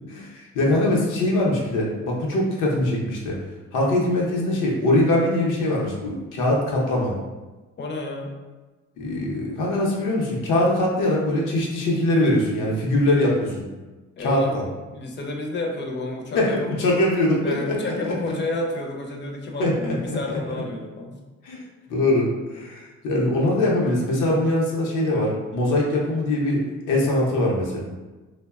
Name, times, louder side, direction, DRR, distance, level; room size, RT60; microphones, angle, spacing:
voice 1, 0.1-3.4 3.7-7.2 9.0-13.7 14.2-14.6 16.3-18.3 19.6-20.4 21.4-21.6 21.9-27.8, left 1 dB, 90° left, -3 dB, 0.7 m, -22 dB
voice 2, 7.8-8.3 14.2-14.5 14.9-16.7 17.4-21.2, left 2 dB, 40° left, 1 dB, 0.5 m, -30 dB
2.8 x 2.1 x 2.3 m, 1.2 s
cardioid pair, 90°, 30 cm